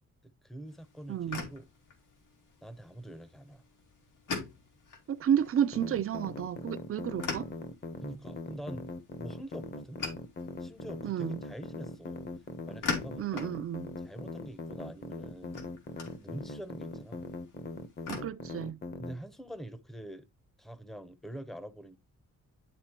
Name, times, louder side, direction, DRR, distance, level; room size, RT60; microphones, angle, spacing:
voice 1, 0.4-1.7 2.6-3.6 8.0-8.9 9.2-10.0 10.6-12.3 12.7-13.5 14.0-15.6 16.1-17.2 19.0-20.3 20.6-22.0, right 1 dB, ahead, 0.7 m, -45 dB
sound 1, 0.7-18.2, left 4 dB, 90° left, 2.6 m, -44 dB
voice 2, 1.1-1.5 5.1-7.5 11.0-11.4 13.2-13.9 18.1-18.8, right 9 dB, 45° right, 0.5 m, -31 dB
sound 2, 5.7-19.1, left 3 dB, 35° left, 0.9 m, -40 dB
11.5 x 4.0 x 2.9 m
wide cardioid pair, 165°, 30 cm